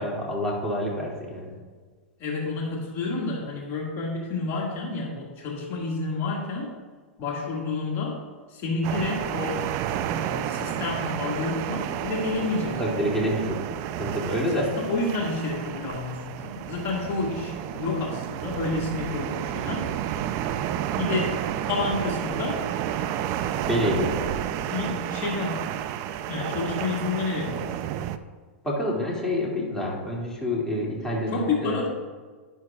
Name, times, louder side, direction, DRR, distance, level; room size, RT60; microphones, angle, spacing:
voice 1, 0.0-1.6 12.8-13.6 14.0-14.7 23.7-24.2 28.6-31.7, equal, 10° left, -4 dB, 2.5 m, -27 dB
voice 2, 2.2-6.7 7.2-8.2 8.5-9.6 10.1-13.0 14.4-19.9 21.0-22.6 24.7-25.6 26.3-27.7 31.3-31.9, left 3 dB, 40° left, -2 dB, 2.1 m, -29 dB
sound 1, 8.8-28.2, right 10 dB, 45° right, 0.5 m, -31 dB
11.0 x 10.5 x 2.4 m, 1.5 s
hypercardioid pair, 120°, 7 cm